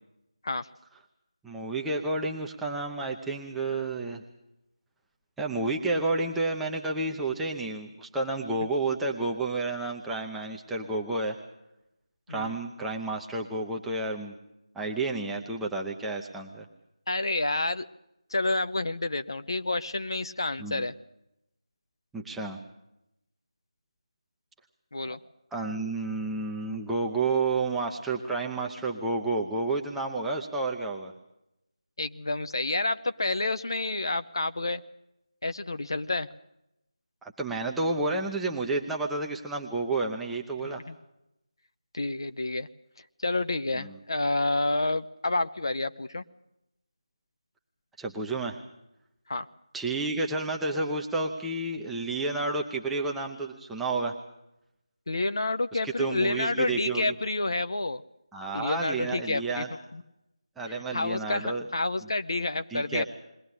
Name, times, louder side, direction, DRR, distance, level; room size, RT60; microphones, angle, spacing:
voice 1, 1.4-4.2 5.4-11.4 12.3-14.3 14.7-16.7 20.6-20.9 22.1-22.6 25.5-31.1 37.2-40.8 43.8-43.9 48.0-48.6 49.7-54.1 55.8-57.1 58.3-59.7 60.6-61.7 62.7-63.0, right 3 dB, ahead, -1 dB, 0.7 m, -30 dB
voice 2, 17.1-17.9 18.3-20.9 24.9-25.2 32.0-34.8 35.4-36.3 40.6-41.0 41.9-42.7 43.2-46.2 49.3-49.5 55.1-58.0 58.5-59.6 59.9-60.0 60.7-63.0, left 2 dB, 45° left, 10 dB, 0.8 m, -29 dB
22.0 x 17.5 x 8.3 m, 0.85 s
figure-of-eight pair, 165°, 3 cm